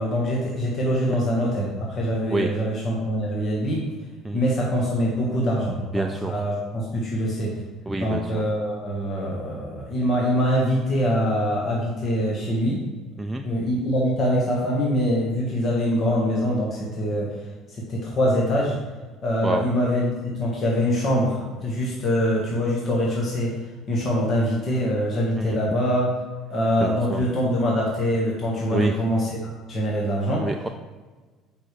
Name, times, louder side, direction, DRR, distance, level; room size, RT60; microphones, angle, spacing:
voice 1, 0.0-3.8 4.3-7.6 8.0-12.8 13.3-17.3 17.7-18.8 19.2-23.6 23.9-26.1 26.5-30.5, equal, 40° left, -3 dB, 1.5 m, -24 dB
voice 2, 5.9-6.3 7.9-8.5 13.2-13.5 19.4-19.6 25.4-25.6 26.8-27.3 28.7-28.9 30.4-30.7, right 2 dB, 10° right, 3 dB, 0.4 m, -27 dB
7.6 x 5.2 x 3.3 m, 1.3 s
cardioid pair, 105°, 0 cm